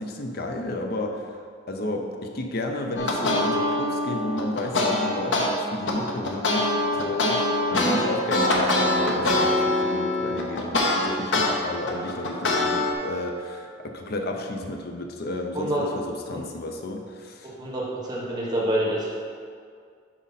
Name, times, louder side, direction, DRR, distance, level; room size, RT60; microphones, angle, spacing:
voice 1, 0.0-1.4 1.7-17.5, left 1 dB, 55° left, 3 dB, 0.7 m, -32 dB
sound 1, 3.0-5.5 5.9-11.5 11.9-12.9, left 2 dB, 75° left, 1.0 m, -23 dB
voice 2, 15.5-15.9 16.3-16.4 17.6-19.1, right 1 dB, 20° right, -6 dB, 1.4 m, -27 dB
7.4 x 5.2 x 4.1 m, 2.2 s
head